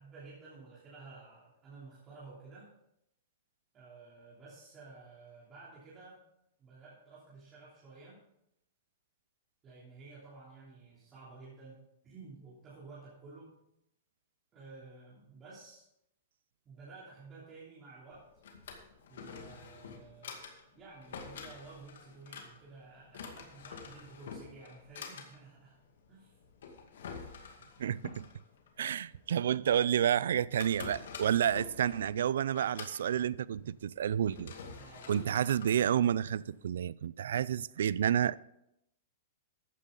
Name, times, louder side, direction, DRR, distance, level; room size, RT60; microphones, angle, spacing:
voice 1, 0.0-2.7 3.7-6.2 6.6-8.2 9.6-13.6 14.5-15.8 16.6-18.2 19.1-20.3 20.7-25.8 26.1-26.4 34.7-35.2, right 3 dB, 20° right, 3.2 m, -52 dB
Drawer open or close, 18.1-36.7, left 5 dB, 80° left, 2.2 m, -49 dB
voice 2, 27.8-28.3 28.8-34.5 35.1-38.4, right 9 dB, 80° right, 0.4 m, -30 dB
14.0 x 9.6 x 3.9 m
supercardioid pair, 160°, 0 cm